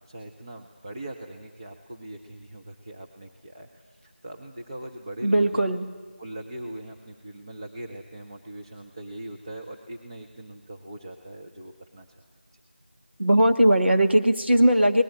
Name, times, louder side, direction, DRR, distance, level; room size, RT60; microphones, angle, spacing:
voice 1, 0.1-5.6 6.2-12.1, right 1 dB, 25° right, 2 dB, 1.0 m, -41 dB
voice 2, 5.2-5.9 13.2-15.0, right 1 dB, 85° right, 4 dB, 2.2 m, -19 dB
23.0 x 19.5 x 8.8 m, 1.4 s
figure-of-eight pair, 170°, 6 cm